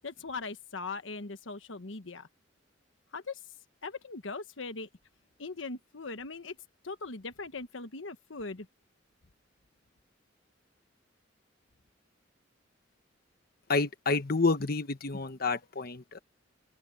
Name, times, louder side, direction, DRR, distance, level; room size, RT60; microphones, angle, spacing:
voice 1, 0.0-2.3 3.1-3.4 3.8-4.9 5.4-6.5 6.8-8.7, left 3 dB, 80° left, 1.2 m, -40 dB
voice 2, 13.7-16.2, left 3 dB, 50° left, 1.2 m, -29 dB
open air
head